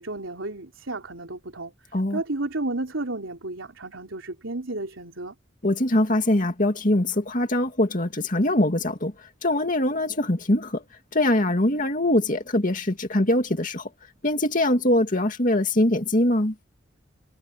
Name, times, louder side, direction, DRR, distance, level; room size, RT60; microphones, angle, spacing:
voice 1, 0.0-5.3, right 2 dB, 90° right, 3.6 m, -32 dB
voice 2, 5.6-10.8 11.1-13.9 14.2-16.5, left 1 dB, 40° left, 2.4 m, -23 dB
head